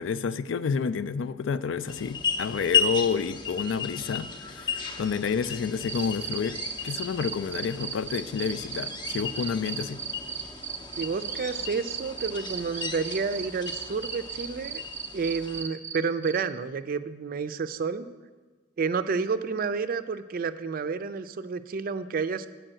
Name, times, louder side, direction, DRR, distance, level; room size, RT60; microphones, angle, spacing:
voice 1, 0.0-6.6 6.8-10.0, left 6 dB, 75° left, 13 dB, 0.4 m, -29 dB
sound 1, 1.9-15.6, left 6 dB, 25° left, 0.6 m, -34 dB
sound 2, 5.9-16.0 16.2-16.4, right 7 dB, 10° right, 0.9 m, -35 dB
voice 2, 11.0-14.8 15.1-18.1 18.8-22.5, right 5 dB, 50° right, 11 dB, 0.4 m, -30 dB
8.9 x 4.7 x 7.6 m, 1.4 s
head